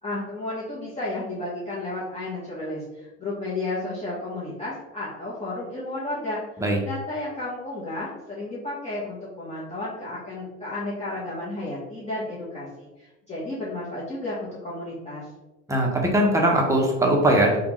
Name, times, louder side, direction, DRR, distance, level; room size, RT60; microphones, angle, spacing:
voice 1, 0.0-6.4 6.8-15.3, left 2 dB, 20° left, -9 dB, 1.0 m, -32 dB
voice 2, 15.7-17.6, right 1 dB, 10° right, 0 dB, 0.8 m, -20 dB
3.5 x 2.4 x 3.1 m, 1.0 s
hypercardioid pair, 80°, 36 cm